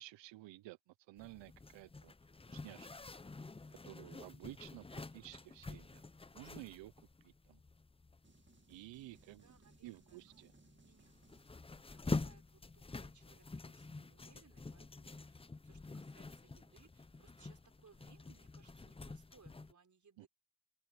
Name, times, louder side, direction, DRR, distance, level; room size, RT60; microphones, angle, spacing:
voice 1, 0.0-2.1 2.5-2.9 3.8-6.0 6.3-6.9 7.2-7.6 8.7-9.5 9.8-10.5 20.2-20.3, right 18 dB, 80° right, 0.7 m, -53 dB
Zipper (clothing), 1.2-19.7, left 3 dB, 15° left, 0.7 m, -47 dB
sound 1, 8.2-11.9, right 4 dB, 25° right, 2.0 m, -68 dB
voice 2, 9.1-11.1 11.7-20.3, right 5 dB, 40° right, 4.4 m, -68 dB
open air
cardioid pair, 70°, 43 cm